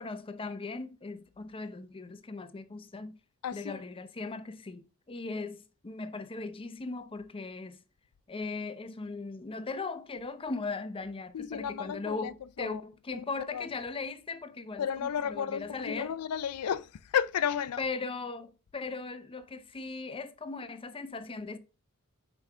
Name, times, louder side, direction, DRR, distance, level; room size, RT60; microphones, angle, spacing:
voice 1, 0.0-3.2 3.5-7.8 8.3-16.2 17.8-21.6, left 3 dB, 25° left, 0.6 m, -38 dB
voice 2, 3.4-3.8 11.3-12.8 13.1-13.2 13.5-13.7 14.8-17.8, left 8 dB, 85° left, 0.4 m, -33 dB
5.5 x 5.0 x 3.5 m
head